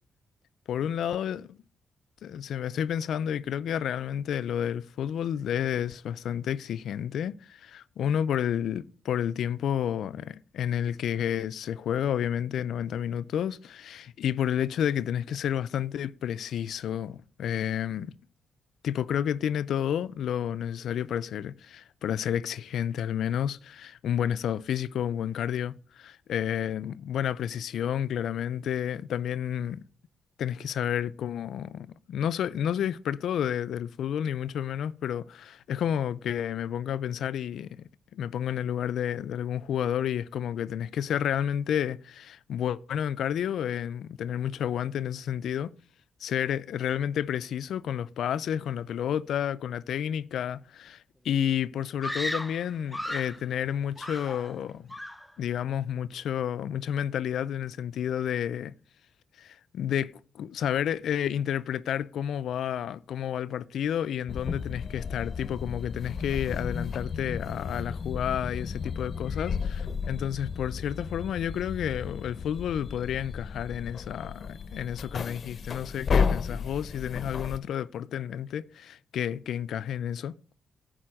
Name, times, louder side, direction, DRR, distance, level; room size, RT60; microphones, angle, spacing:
voice 1, 0.7-1.6 2.2-18.1 18.8-29.8 30.4-45.7 46.2-54.9 55.4-58.7 59.4-69.8 70.1-80.3, left 9 dB, 80° left, 0.4 m, -30 dB
Screaming, 52.0-53.4 54.0-54.6 54.9-55.3, left 1 dB, 5° left, 0.6 m, -35 dB
sound 1, 64.3-77.6, left 5 dB, 50° left, 0.7 m, -33 dB
10.0 x 4.2 x 7.6 m
cardioid pair, 75°, 0 cm